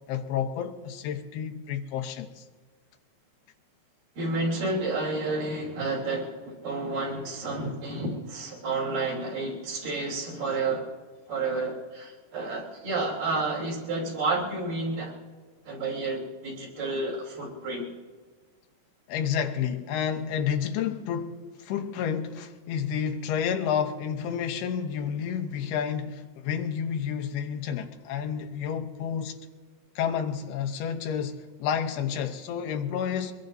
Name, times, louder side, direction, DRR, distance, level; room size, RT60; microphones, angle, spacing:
voice 1, 0.1-2.4 19.1-29.4 30.0-33.3, left 8 dB, 85° left, 2.9 m, -30 dB
voice 2, 4.2-10.9 11.3-15.2 15.6-17.9, right 3 dB, 60° right, 4.6 m, -30 dB
23.5 x 21.0 x 2.7 m
omnidirectional pair, 4.5 m